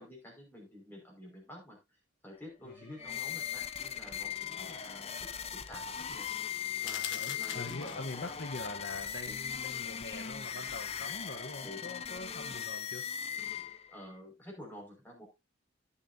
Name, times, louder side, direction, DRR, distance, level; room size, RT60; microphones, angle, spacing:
voice 1, 0.0-1.8 2.2-5.1 5.5-6.5 6.8-8.1 9.3-9.4 11.6-11.8 13.9-15.3, left 1 dB, 10° left, 5.3 m, -50 dB
sound 1, 2.6-5.0, equal, 15° right, 6.3 m, -58 dB
sound 2, 3.0-14.0, left 8 dB, 35° left, 0.7 m, -39 dB
sound 3, 6.8-8.3, left 9 dB, 75° left, 1.5 m, -42 dB
voice 2, 6.8-13.1, left 2 dB, 60° left, 1.1 m, -43 dB
17.5 x 7.0 x 2.7 m
head